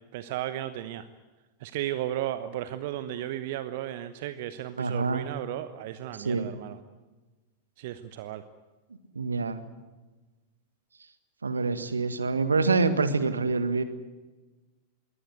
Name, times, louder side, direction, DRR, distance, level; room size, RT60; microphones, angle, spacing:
voice 1, 0.1-1.1 1.6-6.8 7.8-8.4, right 12 dB, 50° right, 12 dB, 1.1 m, -34 dB
voice 2, 4.8-5.3 6.2-6.5 9.1-9.6 11.4-13.8, right 4 dB, 75° right, 12 dB, 1.8 m, -26 dB
22.5 x 18.0 x 9.4 m, 1.2 s
figure-of-eight pair, 90°, 0 cm